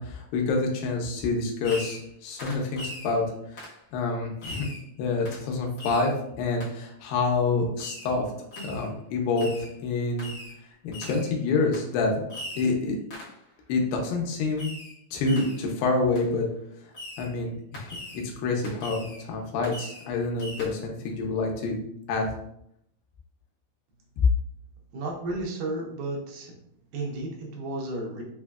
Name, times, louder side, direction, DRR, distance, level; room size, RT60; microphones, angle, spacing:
voice 1, 0.0-3.3 3.5-4.7 5.0-6.1 6.4-8.3 8.6-9.5 9.8-10.3 10.8-12.1 12.6-13.0 13.7-14.7 15.1-16.5 17.2-17.9 18.4-21.8 22.1-22.3, left 3 dB, 85° left, 0 dB, 2.4 m, -27 dB
Fireworks, 1.6-2.1 2.4-3.2 3.6-3.8 4.4-4.8 5.2-5.4 5.8-6.1 6.6-6.7 7.8-8.1 8.5-8.9 9.3-9.7 10.2-10.6 10.9-11.3 11.7-11.9 12.3-12.7 13.1-13.4 14.6-15.0 15.2-15.6 16.1-16.3 16.9-17.3 17.7-18.3 18.6-19.2 19.6-20.1 20.4-20.7, left 1 dB, 70° left, 1.0 m, -40 dB
voice 2, 24.9-26.6 26.9-28.2, right 2 dB, 80° right, -1 dB, 2.5 m, -33 dB
6.1 x 2.1 x 2.3 m, 0.73 s
omnidirectional pair, 4.1 m